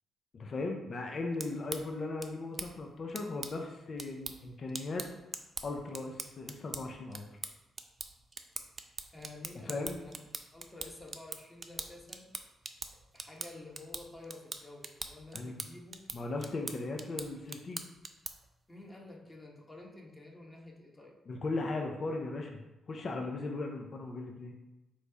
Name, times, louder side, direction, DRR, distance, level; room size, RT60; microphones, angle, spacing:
voice 1, 0.3-5.0 5.6-7.4 9.7-10.0 15.3-15.6 16.1-17.8 21.3-22.5 22.9-24.5, left 3 dB, 55° left, 2 dB, 0.6 m, -37 dB
sound 1, 1.2-18.6, right 3 dB, 40° right, 0.5 m, -44 dB
voice 2, 9.1-10.2 10.5-12.3 12.9-16.0 18.7-21.1, left 2 dB, 25° left, -2 dB, 1.0 m, -50 dB
4.0 x 3.2 x 3.4 m, 1.0 s
supercardioid pair, 50°, 0 cm